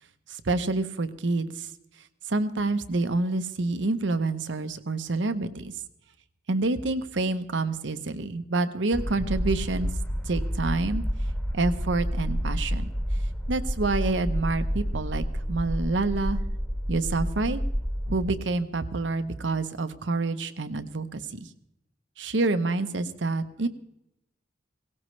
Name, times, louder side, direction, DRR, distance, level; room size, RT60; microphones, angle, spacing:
voice 1, 0.3-1.7 2.3-5.7 6.5-9.9 10.3-11.0 11.5-12.9 13.5-16.4 16.9-17.6 18.1-21.5 22.2-23.7, right 3 dB, 75° right, 10 dB, 0.9 m, -27 dB
sound 1, 8.9-18.3, equal, 15° left, 1.4 m, -29 dB
17.5 x 17.0 x 3.2 m, 0.81 s
head